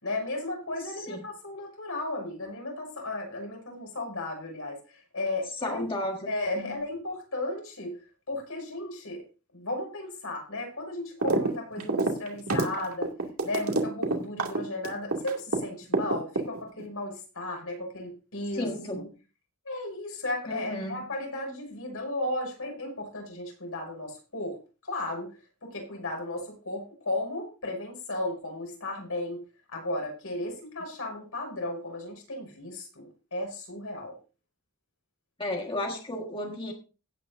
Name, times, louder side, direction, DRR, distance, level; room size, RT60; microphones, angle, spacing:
voice 1, 0.0-8.0 8.3-9.2 9.5-13.1 13.4-19.0 19.6-25.3 25.6-29.4 29.7-34.2, left 2 dB, 65° left, 1 dB, 6.4 m, -35 dB
voice 2, 0.8-1.3 5.6-6.8 18.5-19.1 20.5-21.0 35.4-36.7, left 1 dB, 25° left, 1 dB, 1.6 m, -34 dB
sound 1, 11.2-11.5 11.8-15.6 15.9-16.8, right 3 dB, 70° right, 2.4 m, -26 dB
17.0 x 9.3 x 2.7 m, 0.34 s
head